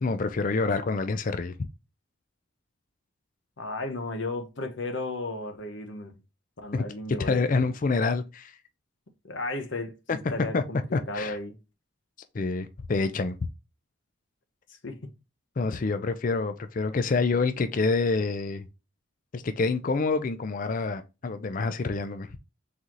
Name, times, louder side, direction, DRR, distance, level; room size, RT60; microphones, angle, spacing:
voice 1, 0.0-1.5 6.7-6.8 7.3-8.5 10.5-10.6 10.9-11.4 12.3-13.4 15.6-18.7 19.3-22.3, left 3 dB, 40° left, 0.4 m, -27 dB
voice 2, 3.6-6.1 6.6-7.5 9.2-10.8 11.1-11.6 14.7-15.1, left 2 dB, 65° left, 0.9 m, -34 dB
4.1 x 3.8 x 3.0 m
head